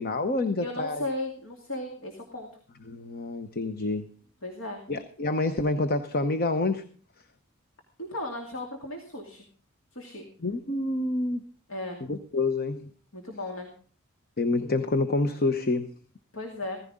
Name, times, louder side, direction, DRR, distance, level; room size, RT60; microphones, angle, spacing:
voice 1, 0.0-1.1 2.9-4.1 4.9-6.8 10.4-11.4 12.1-12.9 14.4-15.9, left 2 dB, 45° left, 10 dB, 0.9 m, -27 dB
voice 2, 0.6-2.5 4.4-4.8 8.0-9.4 9.9-10.3 11.7-12.0 13.1-13.7 16.3-16.8, left 1 dB, 65° left, 2 dB, 2.5 m, -35 dB
16.0 x 15.0 x 3.7 m, 0.44 s
head